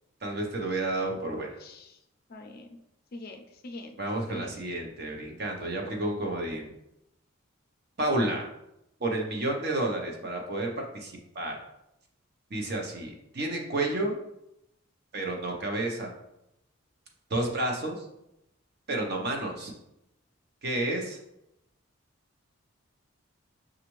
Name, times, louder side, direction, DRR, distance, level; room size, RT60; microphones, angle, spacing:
voice 1, 0.2-1.5 4.0-6.7 8.0-8.4 9.0-11.5 12.5-14.1 15.1-16.1 17.3-18.1 18.9-19.7 20.6-21.2, right 2 dB, 50° right, 1 dB, 0.8 m, -30 dB
voice 2, 1.6-2.0 2.3-2.7 3.1-4.0 4.3-4.6, left 2 dB, 45° left, 4 dB, 0.4 m, -43 dB
6.1 x 2.5 x 3.0 m, 0.83 s
head